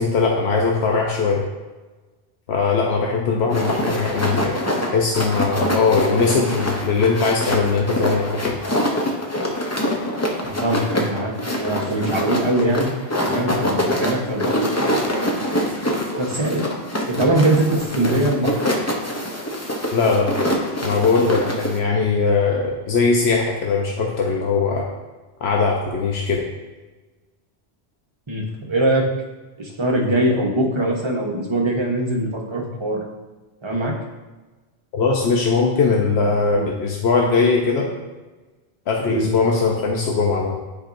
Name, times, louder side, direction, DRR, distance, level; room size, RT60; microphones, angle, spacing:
voice 1, 0.0-1.4 2.5-4.6 4.9-8.6 19.9-20.3 20.8-24.9 25.4-26.5 34.9-37.9 38.9-40.6, left 4 dB, 85° left, -1 dB, 1.0 m, -20 dB
sound 1, 3.5-21.8, equal, 20° left, 0.6 m, -24 dB
voice 2, 10.4-11.3 11.6-12.9 13.3-14.9 16.2-16.7 17.1-18.5 28.3-29.1 29.6-33.0 33.6-34.0 36.2-36.7 39.0-39.3, right 1 dB, 30° right, -1 dB, 1.0 m, -22 dB
10.0 x 4.6 x 2.6 m, 1.2 s
omnidirectional pair, 1.1 m